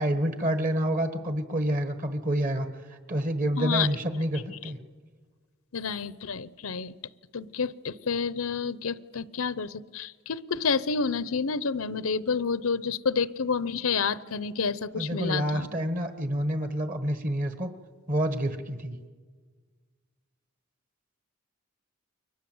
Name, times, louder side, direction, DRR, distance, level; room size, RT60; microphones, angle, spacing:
voice 1, 0.0-4.8 15.0-17.7 18.1-19.0, right 1 dB, 40° right, 8 dB, 1.4 m, -28 dB
voice 2, 3.6-3.9 5.7-6.9 7.3-15.7, left 5 dB, 80° left, 16 dB, 0.8 m, -29 dB
29.5 x 23.5 x 7.9 m, 1.5 s
head